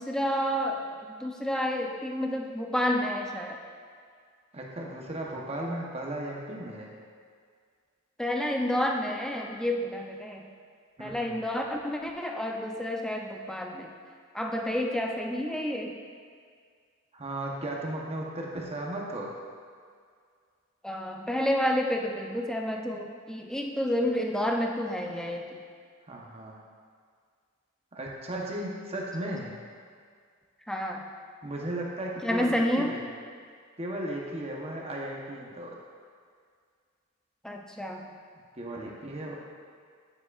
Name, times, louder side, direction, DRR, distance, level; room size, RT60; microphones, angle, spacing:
voice 1, 0.0-3.6 8.2-10.5 11.0-13.9 14.3-16.0 20.8-25.6 30.7-31.1 32.2-33.0 37.4-38.1, left 1 dB, 5° left, 1 dB, 0.5 m, -30 dB
voice 2, 4.5-6.9 11.0-11.4 17.1-19.3 26.1-26.6 27.9-29.5 31.4-33.1 33.8-35.8 38.5-39.4, right 1 dB, 30° right, -2 dB, 0.9 m, -36 dB
9.2 x 6.9 x 2.4 m, 2.1 s
head